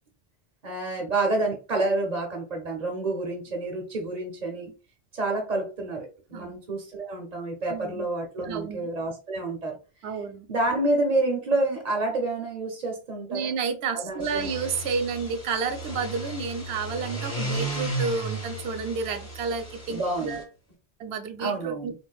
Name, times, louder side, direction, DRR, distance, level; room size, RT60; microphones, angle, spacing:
voice 1, 0.6-4.7 5.1-9.8 10.5-13.5 13.9-14.5 19.9-20.4 21.4-21.9, right 2 dB, 45° right, 1 dB, 0.8 m, -28 dB
voice 2, 7.7-8.1 8.4-8.9 10.0-10.5 13.3-20.4 21.0-21.9, right 5 dB, 85° right, 8 dB, 0.9 m, -31 dB
sound 1, 14.1-20.4, right 1 dB, 15° left, 1.3 m, -34 dB
3.6 x 2.6 x 2.3 m, 0.31 s
omnidirectional pair, 1.1 m